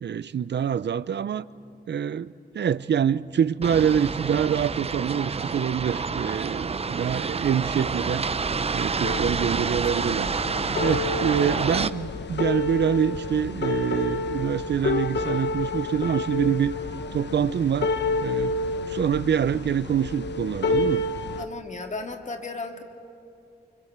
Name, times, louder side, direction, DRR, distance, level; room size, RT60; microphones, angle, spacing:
voice 1, 0.0-1.4 1.9-8.3 8.7-10.3 10.8-16.7 17.1-17.9 18.2-18.6 18.9-21.0, right 8 dB, 80° right, 16 dB, 0.6 m, -25 dB
sound 1, 3.6-11.9, right 5 dB, 35° right, 0.5 m, -28 dB
sound 2, 9.0-21.5, left 3 dB, 80° left, 0.9 m, -29 dB
voice 2, 21.4-22.8, left 3 dB, 45° left, 4 dB, 2.0 m, -35 dB
25.0 x 24.0 x 8.1 m, 2.7 s
wide cardioid pair, 135°, 18 cm